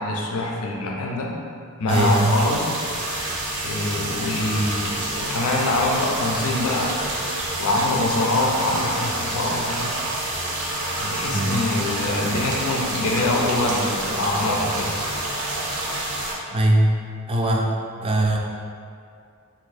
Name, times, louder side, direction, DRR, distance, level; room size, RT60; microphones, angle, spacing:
voice 1, 0.0-1.3 1.8-2.7 3.6-6.9 7.6-9.9 10.9-15.0, left 2 dB, 75° left, -1 dB, 0.4 m, -24 dB
voice 2, 1.9-2.4 11.3-11.5 16.5-16.9 17.3-17.7 18.0-18.4, right 1 dB, 25° right, -1 dB, 0.4 m, -20 dB
sound 1, 1.9-16.3, right 1 dB, 80° right, 0.7 m, -28 dB
2.7 x 2.6 x 4.0 m, 2.4 s
head